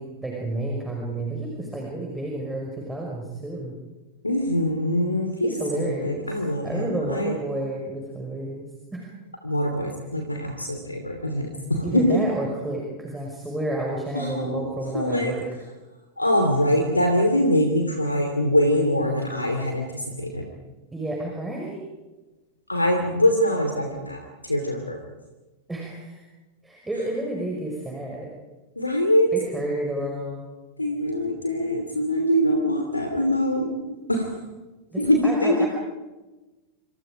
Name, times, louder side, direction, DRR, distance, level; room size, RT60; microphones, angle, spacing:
voice 1, 0.0-3.7 5.4-6.3 6.6-9.0 11.8-15.4 20.9-21.8 25.7-26.2 26.6-28.3 29.3-30.4 34.9-35.7, right 1 dB, 10° right, -1 dB, 5.5 m, -30 dB
voice 2, 4.2-7.3 9.4-12.2 14.1-14.6 14.9-15.3 16.2-20.5 22.7-25.0 28.8-29.3 30.8-34.4 35.0-35.7, left 1 dB, 85° left, 4 dB, 2.7 m, -23 dB
27.0 x 27.0 x 5.1 m, 1.1 s
figure-of-eight pair, 90°, 0 cm